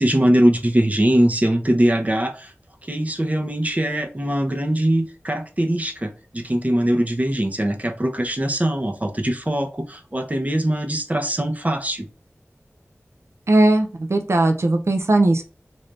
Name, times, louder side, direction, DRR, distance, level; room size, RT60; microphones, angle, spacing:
voice 1, 0.0-2.5 2.9-12.1, right 1 dB, 30° right, 0.7 m, -21 dB
voice 2, 13.5-15.4, right 2 dB, 65° right, 0.5 m, -18 dB
3.4 x 2.6 x 3.9 m
wide cardioid pair, 40°, 5 cm